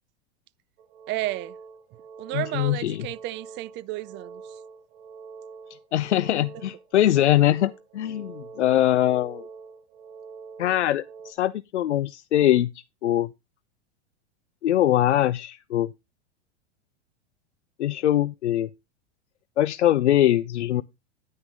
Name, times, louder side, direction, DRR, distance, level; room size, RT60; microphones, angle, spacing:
sound 1, 0.8-11.3, right 5 dB, 65° right, 2.8 m, -45 dB
voice 1, 1.1-1.5 2.2-4.4, right 17 dB, 35° right, 0.5 m, -32 dB
voice 2, 2.3-3.1 5.9-9.5 10.6-12.7 13.0-13.3 14.6-15.9 17.8-18.7 19.6-20.8, left 12 dB, 85° left, 0.6 m, -22 dB
9.5 x 9.5 x 3.6 m
hypercardioid pair, 105°, 34 cm